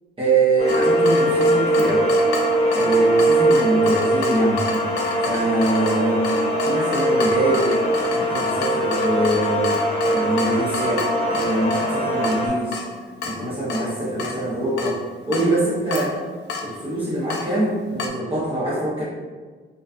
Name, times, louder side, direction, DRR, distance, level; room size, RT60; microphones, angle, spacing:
voice 1, 0.2-2.1 2.7-4.7 5.2-6.3 6.6-7.8 8.1-9.7 10.1-12.8 13.2-15.0 15.3-16.2 16.6-19.0, right 2 dB, 25° right, -8 dB, 0.7 m, -23 dB
sound 1, 0.6-12.5, right 1 dB, 35° left, 0.8 m, -21 dB
Water tap faucet / Drip, 0.7-18.1, left 4 dB, 60° left, 0.4 m, -32 dB
2.5 x 2.3 x 2.3 m, 1.4 s
cardioid pair, 90°, 20 cm